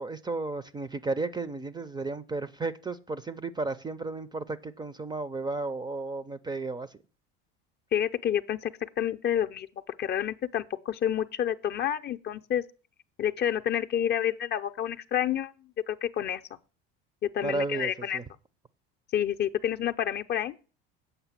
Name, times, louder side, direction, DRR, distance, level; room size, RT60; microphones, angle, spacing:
voice 1, 0.0-6.9 17.4-18.2, right 3 dB, 15° right, 0.5 m, -33 dB
voice 2, 7.9-9.7 10.0-12.6 13.2-16.4 17.2-18.2 19.1-20.5, left 10 dB, 35° left, 0.6 m, -29 dB
8.1 x 5.5 x 7.4 m
supercardioid pair, 105°, 30 cm